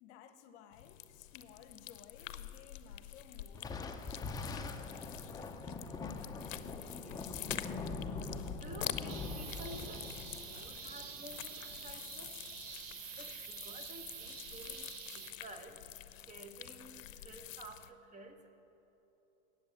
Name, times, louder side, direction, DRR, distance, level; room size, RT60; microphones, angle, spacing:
voice 1, 0.0-4.5, left 8 dB, 60° left, 10 dB, 0.9 m, -58 dB
sound 1, 0.7-17.9, left 12 dB, 90° left, 0.6 m, -47 dB
Thunder, 3.5-12.3, left 4 dB, 10° left, 0.5 m, -43 dB
voice 2, 6.1-18.5, right 2 dB, 20° right, 6 dB, 0.9 m, -53 dB
sound 2, 9.1-15.3, right 7 dB, 80° right, 1.3 m, -47 dB
8.7 x 8.1 x 8.5 m, 3.0 s
hypercardioid pair, 115°, 38 cm